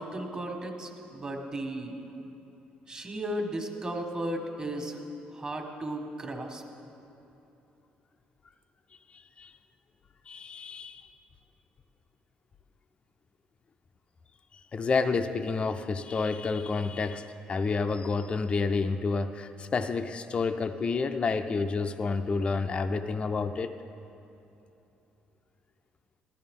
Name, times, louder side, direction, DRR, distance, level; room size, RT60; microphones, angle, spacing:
voice 1, 0.0-2.0 2.9-5.0 5.3-6.6, right 1 dB, 30° right, 2 dB, 1.5 m, -35 dB
voice 2, 9.1-9.5 10.3-11.1 14.5-23.7, left 4 dB, 35° left, 7 dB, 0.5 m, -29 dB
15.0 x 12.5 x 3.7 m, 2.9 s
cardioid pair, 95°, 3 cm